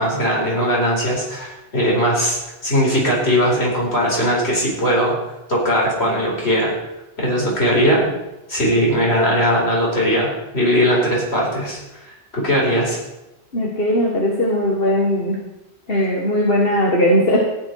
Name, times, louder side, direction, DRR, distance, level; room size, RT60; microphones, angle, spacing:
voice 1, 0.0-5.1 5.5-6.7 7.2-8.0 8.5-11.8 12.1-13.0, equal, 75° left, -3 dB, 4.8 m, -19 dB
voice 2, 13.5-15.4 15.9-17.4, equal, 60° left, -2 dB, 2.1 m, -18 dB
14.5 x 10.5 x 4.8 m, 0.96 s
omnidirectional pair, 1.1 m